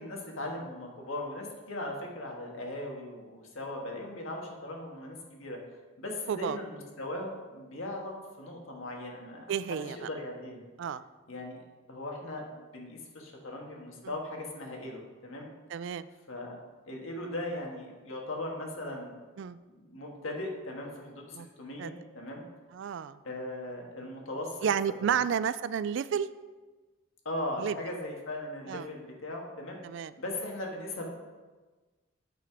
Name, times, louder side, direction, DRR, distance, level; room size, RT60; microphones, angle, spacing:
voice 1, 0.0-5.6 6.0-10.6 11.3-11.6 11.9-15.5 16.3-16.6 16.9-19.1 19.8-22.4 23.2-24.6 25.1-25.2 27.2-29.8 30.2-31.1, left 1 dB, 75° left, 0 dB, 1.7 m, -38 dB
voice 2, 9.5-10.0 10.8-11.0 15.7-16.1 19.4-19.6 21.3-21.5 21.8-21.9 22.7-23.2 24.6-26.3 27.6-27.7 28.7-28.9 29.8-30.1, right 7 dB, 60° right, 15 dB, 0.3 m, -31 dB
8.6 x 5.7 x 4.8 m, 1.3 s
head